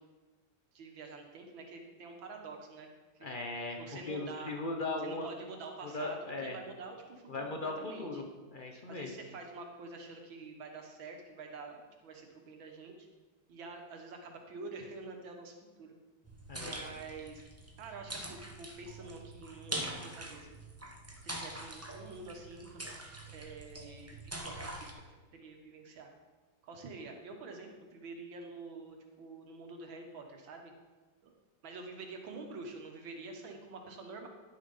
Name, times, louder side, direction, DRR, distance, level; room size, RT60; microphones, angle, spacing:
voice 1, 0.7-2.9 3.1-3.3 3.8-4.5 5.0-8.2 8.9-13.1 13.5-16.0 16.6-17.4 17.8-20.6 21.2-22.8 23.3-25.0 25.3-26.1 26.6-30.7 31.2-31.3 31.6-34.3, right 3 dB, 75° right, 3 dB, 2.1 m, -47 dB
voice 2, 3.2-3.8 4.1-5.3 5.8-6.6 7.3-8.2 8.5-9.1 16.5-16.8, left 2 dB, 55° left, 2 dB, 0.5 m, -38 dB
sound 1, 16.2-24.9, right 1 dB, 20° right, 0.4 m, -44 dB
11.0 x 6.7 x 5.4 m, 1.3 s
omnidirectional pair, 2.2 m